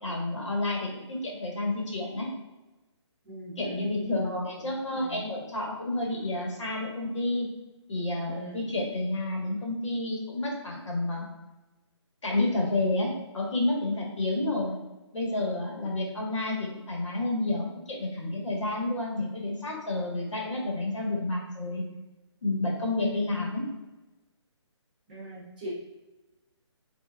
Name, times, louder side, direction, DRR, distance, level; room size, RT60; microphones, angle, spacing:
voice 1, 0.0-2.3 3.6-7.5 7.9-11.3 12.2-14.8 15.1-21.8 22.4-23.7, left 2 dB, 80° left, -2 dB, 1.4 m, -30 dB
voice 2, 3.2-3.9 4.2-4.6 5.1-5.2 8.3-8.6 25.1-25.7, right 1 dB, 20° right, -9 dB, 1.0 m, -40 dB
5.7 x 2.7 x 2.4 m, 1.1 s
hypercardioid pair, 180°, 15 cm